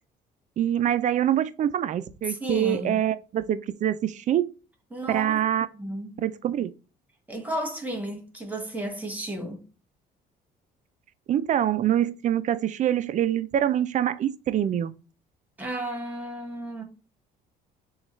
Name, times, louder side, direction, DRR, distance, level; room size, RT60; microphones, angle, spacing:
voice 1, 0.6-4.5 5.1-5.7 6.2-6.7 11.3-14.9, right 11 dB, 45° right, 0.5 m, -25 dB
voice 2, 2.2-3.0 4.9-5.4 5.7-6.2 7.3-9.6 15.6-16.8, right 1 dB, 10° right, 1.4 m, -33 dB
7.1 x 2.4 x 3.0 m
cardioid pair, 110°, 17 cm